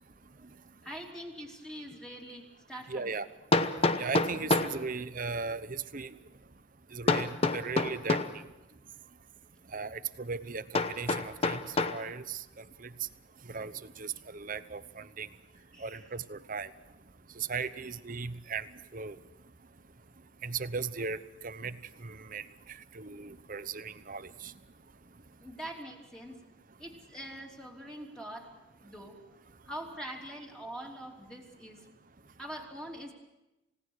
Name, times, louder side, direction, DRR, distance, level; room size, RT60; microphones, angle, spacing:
voice 1, 0.8-3.1 15.5-16.1 17.7-17.8 25.4-26.4 26.8-28.5 28.8-29.4 29.7-31.8 32.4-33.1, right 1 dB, 5° left, -1 dB, 3.1 m, -44 dB
Hammer, 1.9-2.0 3.5-4.8 7.1-8.4 10.7-12.0, left 3 dB, 30° left, 1.0 m, -28 dB
voice 2, 2.9-3.3 4.0-6.1 6.9-8.2 9.7-11.6 11.9-12.4 13.5-13.7 14.0-15.3 15.8-16.7 17.4-18.6 18.9-19.2 20.4-21.2 21.4-21.7 22.0-22.4 22.9-24.5, right 5 dB, 40° right, 13 dB, 0.9 m, -37 dB
29.0 x 17.5 x 6.4 m, 0.98 s
head